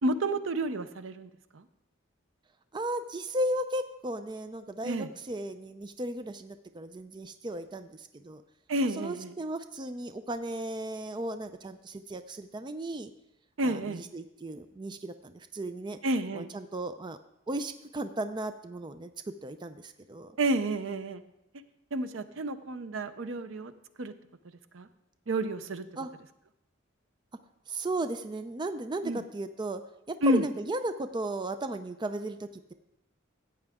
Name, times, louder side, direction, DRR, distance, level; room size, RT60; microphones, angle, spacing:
voice 1, 0.0-1.3 4.8-5.1 8.7-9.3 13.6-14.0 16.0-16.5 20.4-21.2 21.9-23.7 24.0-24.1 24.7-24.9 25.3-25.8 29.0-29.2 30.2-30.4, right 1 dB, 80° right, 11 dB, 0.6 m, -30 dB
voice 2, 2.7-8.4 8.9-13.1 13.6-16.0 16.3-17.2 17.5-20.4 26.0-26.1 27.7-29.8 30.1-32.7, right 1 dB, 25° right, 10 dB, 0.4 m, -35 dB
14.0 x 8.6 x 3.6 m, 0.86 s
head